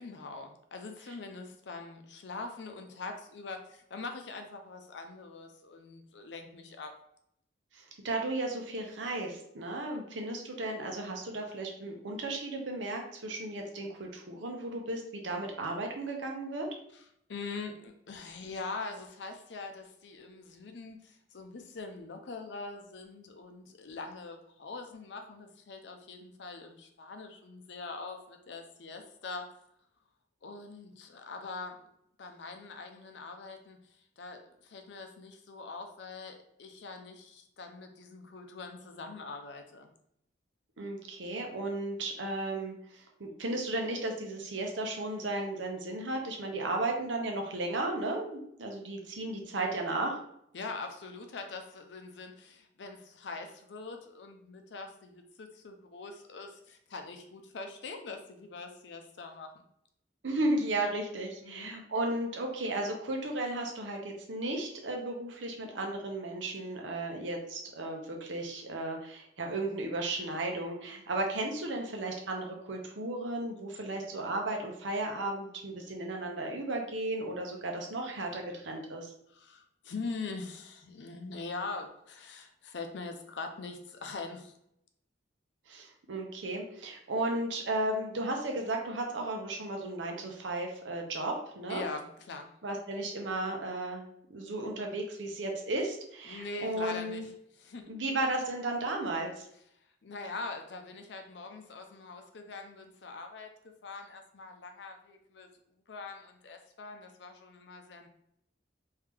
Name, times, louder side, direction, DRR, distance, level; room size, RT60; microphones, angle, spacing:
voice 1, 0.0-6.9 17.3-29.5 30.4-31.9 32.2-33.8 34.2-39.9 50.5-59.6 61.4-61.7 79.3-84.6 91.7-92.5 96.3-97.3 97.6-97.9 100.0-103.5 103.8-105.5 105.9-108.1, left 3 dB, 75° left, 5 dB, 0.5 m, -43 dB
voice 2, 7.7-16.7 40.8-50.2 60.2-79.1 85.7-91.8 92.6-97.2 97.9-99.5, right 2 dB, 90° right, 2 dB, 0.8 m, -34 dB
3.2 x 2.7 x 3.5 m, 0.73 s
head